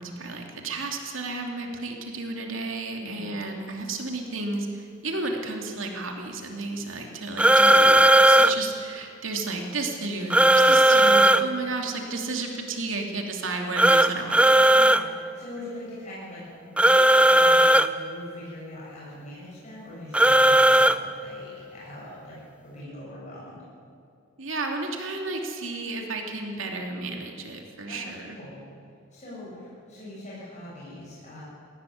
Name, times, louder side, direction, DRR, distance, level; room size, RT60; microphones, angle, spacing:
voice 1, 0.0-14.6 24.4-28.4, right 3 dB, 75° right, 2 dB, 2.8 m, -32 dB
voice 2, 3.0-3.3 10.9-11.1 12.3-12.4 14.7-16.5 16.8-23.6 27.9-28.6 29.1-31.4, left 1 dB, 35° left, -8 dB, 7.1 m, -42 dB
sound 1, 7.4-8.5 10.3-11.4 13.8-15.0 16.8-17.9 20.1-21.0, right 1 dB, 5° right, 0.5 m, -16 dB
19.5 x 17.0 x 9.4 m, 2.5 s
head